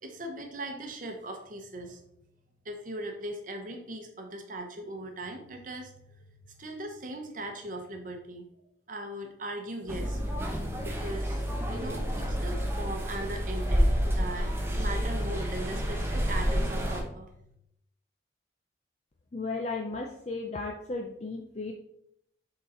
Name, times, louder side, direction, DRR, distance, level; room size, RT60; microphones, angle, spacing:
voice 1, 0.0-2.0 2.6-8.4 8.9-10.4 10.8-17.3, right 1 dB, 45° right, 4 dB, 1.0 m, -39 dB
sound 1, 9.9-17.0, equal, 15° right, 0.9 m, -29 dB
voice 2, 19.3-21.7, left 3 dB, 35° left, 2 dB, 0.5 m, -35 dB
7.0 x 3.9 x 4.2 m, 0.76 s
head